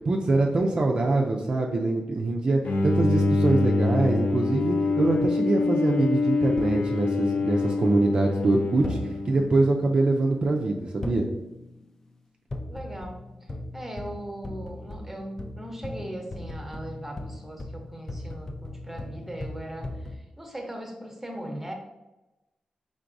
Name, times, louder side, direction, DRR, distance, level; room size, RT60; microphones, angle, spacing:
voice 1, 0.1-9.0 9.3-11.3, right 2 dB, 40° right, 0 dB, 0.4 m, -24 dB
Bowed string instrument, 2.6-9.9, left 3 dB, 90° left, 0.4 m, -25 dB
sound 1, 4.3-4.9 6.6-7.9 8.8-9.7 11.0-11.9 12.5-20.2, left 1 dB, 25° left, 0.4 m, -39 dB
voice 2, 12.7-21.7, right 1 dB, 10° right, 2 dB, 0.7 m, -39 dB
4.6 x 3.7 x 2.6 m, 1.0 s
wide cardioid pair, 150°, 2 cm